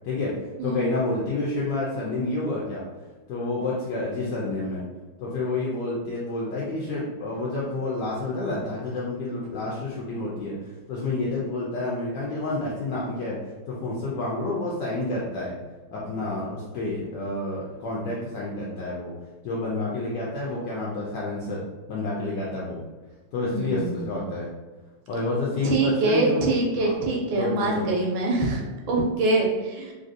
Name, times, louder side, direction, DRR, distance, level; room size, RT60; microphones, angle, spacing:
voice 1, 0.0-0.4 0.6-2.9 3.3-4.8 5.2-10.6 10.9-13.4 13.7-15.5 15.9-19.1 19.4-21.6 21.9-22.8 23.3-24.5 25.1-26.5 26.8-26.9 27.4-27.9, left 2 dB, 75° left, -5 dB, 1.0 m, -29 dB
voice 2, 23.5-24.2 25.6-29.9, right 2 dB, 75° right, -1 dB, 1.3 m, -24 dB
3.2 x 2.6 x 2.5 m, 1.2 s
omnidirectional pair, 2.3 m